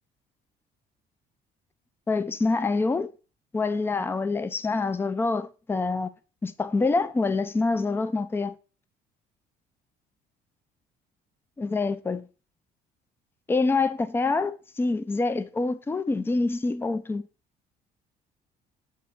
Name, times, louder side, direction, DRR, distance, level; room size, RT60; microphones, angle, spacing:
voice 1, 2.1-3.1 3.5-6.1 6.4-8.6 11.6-12.3 13.5-17.2, left 3 dB, 15° left, 0.4 m, -26 dB
6.2 x 3.6 x 4.3 m
cardioid pair, 110°, 17 cm